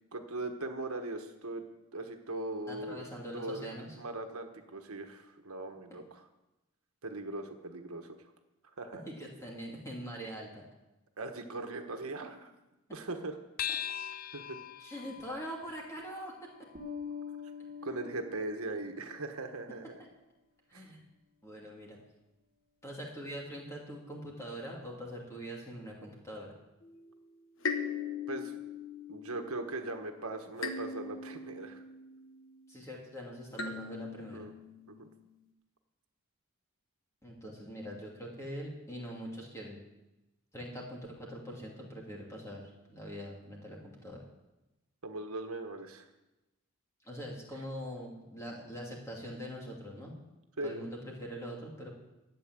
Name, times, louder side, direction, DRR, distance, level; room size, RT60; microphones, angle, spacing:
voice 1, 0.1-1.6 1.9-3.0 3.3-6.2 7.0-8.2 8.8-9.0 11.2-12.5 12.9-13.4 14.3-14.6 17.8-20.0 20.7-20.9 28.3-28.5 29.1-31.8 34.3-34.5 34.9-35.1 45.0-46.1 50.6-50.9, right 2 dB, 75° right, 5 dB, 1.3 m, -39 dB
voice 2, 2.7-4.0 9.1-10.6 14.8-16.5 20.7-21.0 21.4-22.0 22.8-26.5 32.7-34.4 37.2-39.8 40.5-44.2 47.0-50.1 50.6-51.9, equal, 15° left, -2 dB, 2.7 m, -43 dB
sound 1, 13.6-18.3, left 9 dB, 40° left, 0.5 m, -42 dB
Bass guitar, 16.7-19.2, left 7 dB, 35° right, 1.2 m, -44 dB
sound 2, 26.8-27.3 27.6-30.1 30.6-32.7 33.5-35.2, left 5 dB, 60° left, 1.3 m, -40 dB
12.5 x 9.0 x 7.6 m, 1.0 s
head